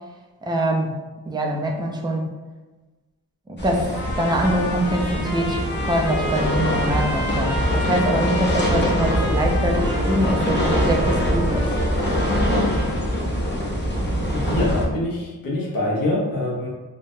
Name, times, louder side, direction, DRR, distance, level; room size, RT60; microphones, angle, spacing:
voice 1, 0.4-1.0 1.3-2.3 3.5-11.7, right 1 dB, 10° right, 0 dB, 0.3 m, -24 dB
sound 1, 3.6-14.9, equal, 30° left, 0.6 m, -23 dB
Trumpet, 3.9-13.0, left 1 dB, 75° left, 0.7 m, -32 dB
voice 2, 14.3-16.7, left 1 dB, 55° left, -5 dB, 1.1 m, -25 dB
3.1 x 2.2 x 2.6 m, 1.2 s
wide cardioid pair, 120°, 39 cm